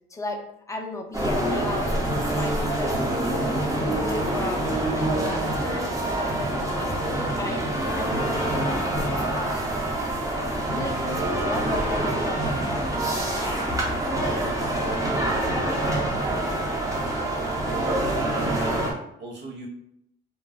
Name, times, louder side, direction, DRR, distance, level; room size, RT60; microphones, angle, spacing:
voice 1, 0.7-9.9 10.7-13.6 14.1-14.8, left 2 dB, 15° left, 2 dB, 0.5 m, -35 dB
sound 1, 1.1-18.9, right 1 dB, 15° right, 0.8 m, -26 dB
voice 2, 17.6-18.9 19.2-19.7, right 2 dB, 60° right, 0 dB, 0.7 m, -38 dB
2.3 x 2.1 x 3.5 m, 0.75 s
cardioid pair, 90°, 20 cm